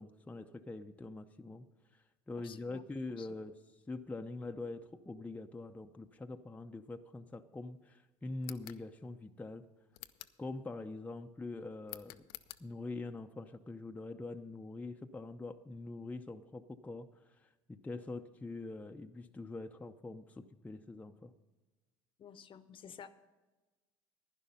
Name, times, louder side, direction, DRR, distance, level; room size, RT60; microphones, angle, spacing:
voice 1, 0.0-1.7 1.9-3.6 3.9-9.6 10.4-12.3 12.6-21.3, left 2 dB, 10° left, 5 dB, 0.6 m, -44 dB
voice 2, 2.4-2.8 3.2-3.3 22.2-23.1, left 7 dB, 45° left, 13 dB, 0.8 m, -51 dB
sound 1, 8.4-8.8 9.9-10.4 11.9-12.6, left 17 dB, 85° left, 0.5 m, -49 dB
11.0 x 10.5 x 5.4 m, 1.2 s
supercardioid pair, 80°, 12 cm